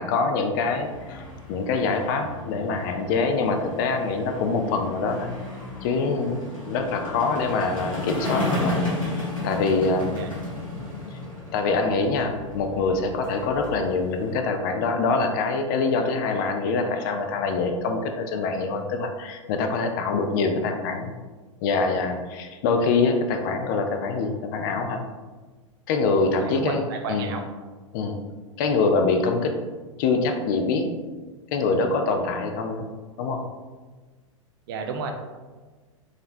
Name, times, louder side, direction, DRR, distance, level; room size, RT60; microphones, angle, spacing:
voice 1, 0.0-5.3 5.8-8.8 9.0-10.2 11.1-11.2 11.5-21.1 21.6-25.0 25.9-27.3 27.9-28.2 28.6-29.5 30.0-30.9 31.5-32.8 33.2-33.4, left 4 dB, 40° left, 5 dB, 0.4 m, -25 dB
sound 1, 0.5-14.3, left 1 dB, 85° left, 1.4 m, -34 dB
voice 2, 26.4-27.4 34.7-35.1, right 5 dB, 45° right, 4 dB, 0.5 m, -31 dB
3.8 x 3.2 x 2.6 m, 1.3 s
figure-of-eight pair, 95°, 17 cm